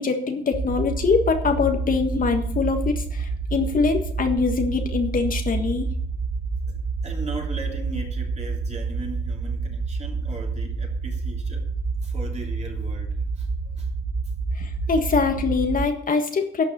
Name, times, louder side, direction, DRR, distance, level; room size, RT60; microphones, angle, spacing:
voice 1, 0.0-5.9 14.5-16.6, left 4 dB, 45° left, 5 dB, 1.6 m, -23 dB
sound 1, 0.5-15.9, right 4 dB, 55° right, 1.6 m, -28 dB
voice 2, 7.0-11.7 12.0-13.5 13.8-13.9, right 3 dB, 35° right, 0 dB, 3.4 m, -38 dB
11.5 x 6.3 x 8.1 m, 0.65 s
cardioid pair, 90°, 20 cm